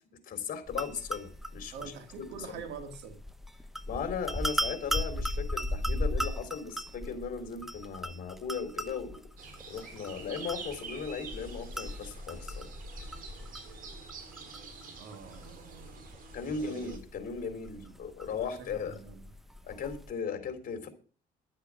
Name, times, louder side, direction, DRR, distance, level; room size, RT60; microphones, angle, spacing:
voice 1, 0.2-2.6 3.9-9.3 9.7-12.7 16.3-19.0 19.6-20.9, left 6 dB, 55° left, 3.5 m, -37 dB
sound 1, 0.7-20.1, equal, ahead, 0.9 m, -38 dB
voice 2, 1.7-3.2 15.0-16.9 17.7-17.9 18.2-19.3, right 5 dB, 85° right, 2.3 m, -46 dB
sound 2, 9.4-17.0, right 5 dB, 55° right, 3.7 m, -47 dB
11.5 x 7.9 x 7.6 m
cardioid pair, 110°, 17 cm